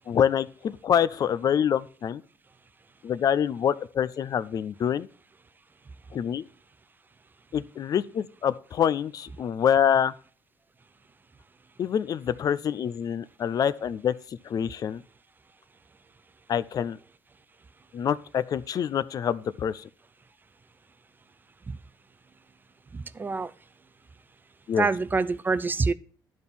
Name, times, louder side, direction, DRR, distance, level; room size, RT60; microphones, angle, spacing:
voice 1, 0.1-2.2 3.0-5.1 6.1-6.4 7.5-10.1 11.8-15.0 16.5-17.0 17.9-19.9 24.7-24.9, left 8 dB, 50° left, 0.5 m, -26 dB
voice 2, 22.9-23.5 24.8-25.9, right 4 dB, 25° right, 0.5 m, -26 dB
10.5 x 4.3 x 7.0 m
cardioid pair, 105°, 8 cm